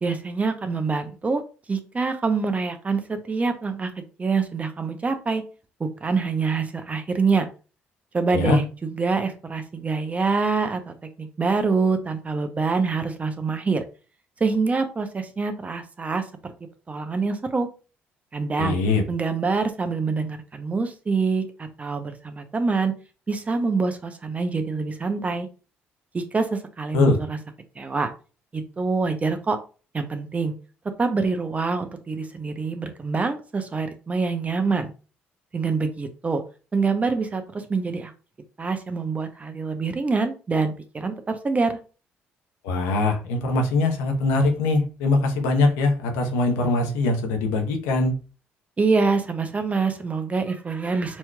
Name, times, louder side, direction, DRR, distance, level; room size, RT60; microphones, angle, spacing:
voice 1, 0.0-1.4 1.7-5.4 5.8-7.5 8.1-13.8 14.4-16.3 16.9-17.7 18.3-18.8 19.1-22.9 23.3-25.5 26.1-27.4 27.8-28.1 28.5-29.6 29.9-30.5 31.0-34.9 35.5-36.4 36.7-38.1 38.6-41.8 48.8-51.2, right 4 dB, 30° right, 7 dB, 0.8 m, -25 dB
voice 2, 18.6-19.0 26.9-27.2 42.6-48.1, left 3 dB, 85° left, 3 dB, 0.8 m, -22 dB
4.2 x 2.9 x 2.3 m, 0.34 s
supercardioid pair, 65°, 5 cm